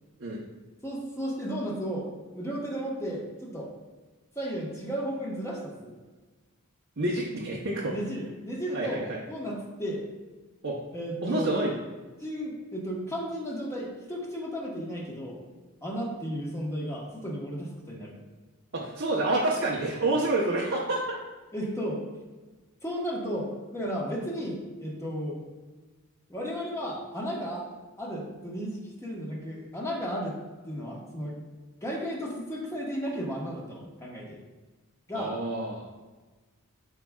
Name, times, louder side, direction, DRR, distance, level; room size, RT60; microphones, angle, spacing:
voice 1, 0.8-3.7 4.3-5.9 7.8-10.0 10.9-11.5 12.2-15.4 15.8-18.1 21.5-22.0 22.8-25.4 26.3-27.7 28.0-30.4 30.6-31.4 31.8-34.4 35.1-35.3, equal, 15° left, -3 dB, 1.4 m, -34 dB
voice 2, 7.0-8.0 8.7-9.2 10.6-10.8 11.2-11.7 18.7-21.2 35.1-35.9, right 2 dB, 60° right, -4 dB, 1.0 m, -28 dB
11.5 x 5.1 x 2.4 m, 1.3 s
head